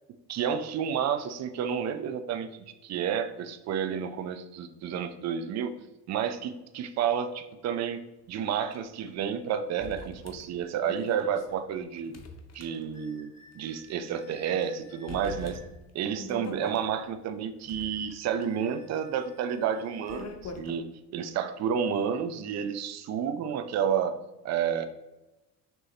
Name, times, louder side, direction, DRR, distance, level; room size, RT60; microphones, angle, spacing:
voice 1, 0.3-2.5 2.8-5.7 6.1-8.0 8.3-12.1 12.5-15.6 15.9-20.8 21.1-24.2 24.4-24.9, right 8 dB, 35° right, 10 dB, 0.5 m, -30 dB
sound 1, 8.7-8.8 9.1-9.2 9.8-13.2 13.5-13.6 14.2-14.7 15.1-16.9 17.5-20.8, left 3 dB, 30° left, 0.8 m, -44 dB
sound 2, 12.9-15.7 17.8-20.4, left 1 dB, 15° left, 1.4 m, -58 dB
6.2 x 3.0 x 2.8 m, 1.0 s
hypercardioid pair, 55°, 49 cm